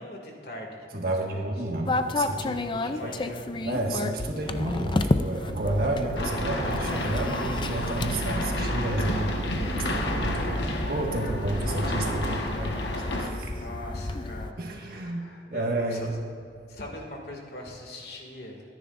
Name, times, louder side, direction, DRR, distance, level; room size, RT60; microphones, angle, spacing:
voice 1, 0.0-1.5 2.7-3.5 10.3-10.6 13.5-14.6 14.8-16.1 16.7-18.6, left 1 dB, 65° left, 0 dB, 2.3 m, -42 dB
voice 2, 0.9-2.6 3.0-3.1 3.6-9.3 9.8-10.6 10.9-13.6 14.6-16.1, right 1 dB, 60° right, 0 dB, 1.6 m, -31 dB
sound 1, 1.9-14.5, left 2 dB, 25° left, 0.4 m, -32 dB
sound 2, 5.5-12.4, right 1 dB, 80° right, 0.7 m, -33 dB
sound 3, 6.2-13.3, left 1 dB, 80° left, 1.4 m, -31 dB
23.5 x 10.0 x 2.6 m, 2.5 s
head